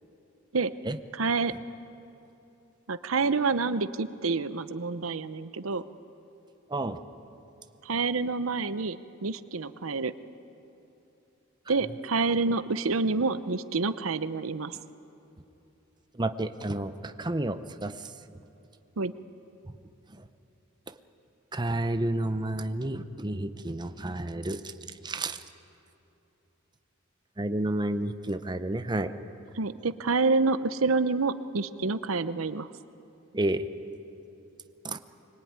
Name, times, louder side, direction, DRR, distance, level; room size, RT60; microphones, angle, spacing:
voice 1, 1.1-1.5 2.9-5.8 7.8-10.1 11.7-14.8 19.0-19.1 29.5-32.7, right 4 dB, 85° right, 13 dB, 0.8 m, -28 dB
voice 2, 16.2-17.9 21.5-24.6 25.0-25.4 27.4-29.1 33.3-33.7 34.8-35.0, right 1 dB, 20° right, 9 dB, 0.8 m, -30 dB
24.5 x 21.5 x 9.6 m, 2.9 s
head